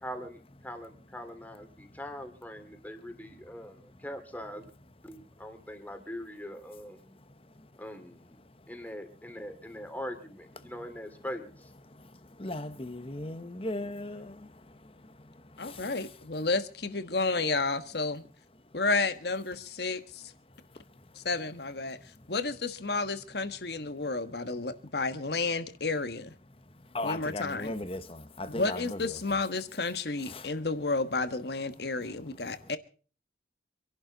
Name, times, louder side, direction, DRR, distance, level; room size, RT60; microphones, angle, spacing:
voice 1, 0.0-4.7 5.0-7.2 7.8-8.4 8.7-11.7, equal, 10° left, 2.5 m, -42 dB
voice 2, 12.4-14.4 15.7-15.8 26.9-29.2 30.3-30.5, left 2 dB, 30° left, 1.1 m, -37 dB
voice 3, 15.6-18.2 18.7-20.2 21.1-22.0 22.3-26.3 27.0-27.7 28.6-32.8, left 3 dB, 60° left, 1.4 m, -31 dB
26.5 x 11.5 x 4.0 m
head